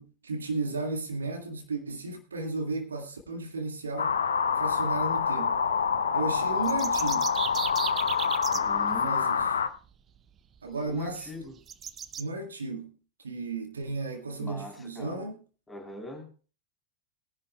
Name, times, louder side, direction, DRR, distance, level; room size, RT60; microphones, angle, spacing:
voice 1, 0.0-4.2 4.6-5.6 6.1-7.3 8.9-9.4 10.6-11.4 12.2-13.0 13.2-15.3, right 3 dB, 70° right, 3 dB, 2.1 m, -34 dB
sound 1, 4.0-9.7, left 6 dB, 70° left, 0.9 m, -26 dB
sound 2, 6.5-8.6 10.4-10.5 10.9-11.0 11.7-12.2, right 8 dB, 25° right, 0.7 m, -35 dB
voice 2, 8.5-9.2 10.8-11.6 14.4-15.3 15.7-16.3, left 1 dB, 10° left, 2 dB, 3.8 m, -41 dB
21.5 x 11.0 x 2.4 m, 0.37 s
figure-of-eight pair, 90°, 0 cm